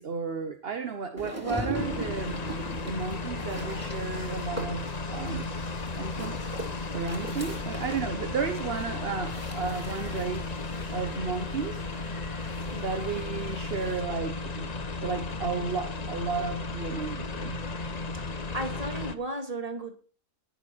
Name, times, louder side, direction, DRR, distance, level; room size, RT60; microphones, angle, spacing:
voice 1, 0.0-2.4 2.8-5.5 6.0-6.4 6.9-10.5 10.9-11.8 12.8-17.6, right 5 dB, 45° right, 1.3 m, -33 dB
sound 1, 1.2-14.0, right 1 dB, 10° right, 3.3 m, -41 dB
sound 2, 1.7-19.1, left 3 dB, 30° left, 1.0 m, -35 dB
voice 2, 18.1-19.9, right 1 dB, 25° right, 2.2 m, -35 dB
19.5 x 6.8 x 4.5 m
omnidirectional pair, 1.5 m